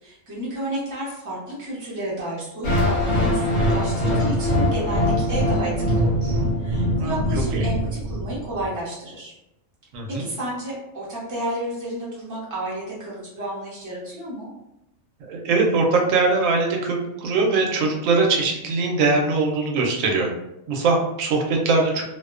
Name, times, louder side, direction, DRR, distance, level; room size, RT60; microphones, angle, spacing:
voice 1, 0.0-9.3 10.2-14.5, right 1 dB, 20° right, -7 dB, 0.6 m, -31 dB
sound 1, 2.6-8.7, equal, 65° left, 1.2 m, -22 dB
voice 2, 9.9-10.2 15.2-20.3 20.7-22.0, right 3 dB, 90° right, 1 dB, 1.0 m, -21 dB
2.5 x 2.1 x 2.3 m, 0.88 s
omnidirectional pair, 1.3 m